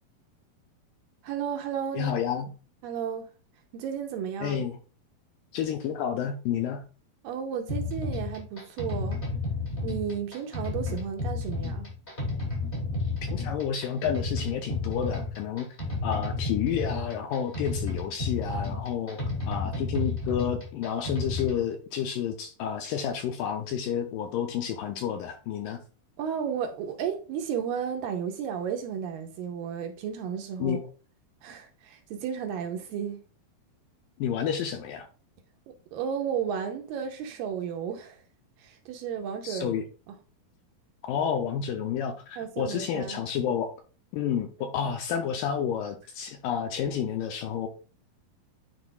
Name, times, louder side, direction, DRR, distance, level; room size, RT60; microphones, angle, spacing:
voice 1, 1.2-2.1 2.8-3.3 3.7-4.6 7.2-9.2 9.8-11.9 26.2-30.8 31.4-33.2 35.7-38.2 38.6-39.8 40.1-40.2 42.4-43.2, right 8 dB, 80° right, 2.2 m, -33 dB
voice 2, 1.9-2.5 4.4-4.8 5.5-6.8 12.9-15.7 16.0-19.2 19.5-25.8 30.6-30.8 34.2-35.1 39.4-39.8 41.1-43.7 44.1-47.7, left 8 dB, 80° left, 2.0 m, -30 dB
sound 1, 7.7-21.6, left 3 dB, 20° left, 1.4 m, -32 dB
10.5 x 4.1 x 2.3 m
omnidirectional pair, 4.4 m